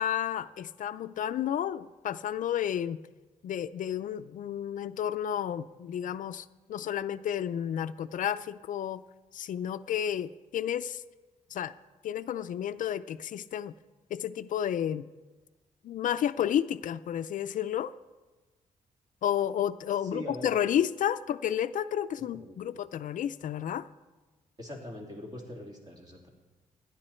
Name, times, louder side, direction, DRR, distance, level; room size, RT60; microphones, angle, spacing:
voice 1, 0.0-3.0 3.4-9.0 9.3-11.0 11.5-11.7 12.0-13.7 14.1-15.1 15.8-17.9 19.2-23.9, left 10 dB, 70° left, 12 dB, 0.5 m, -31 dB
voice 2, 20.0-20.5 22.2-22.6 24.6-26.3, left 1 dB, 30° right, -1 dB, 3.2 m, -42 dB
25.5 x 10.5 x 4.4 m, 1.2 s
wide cardioid pair, 165°, 14 cm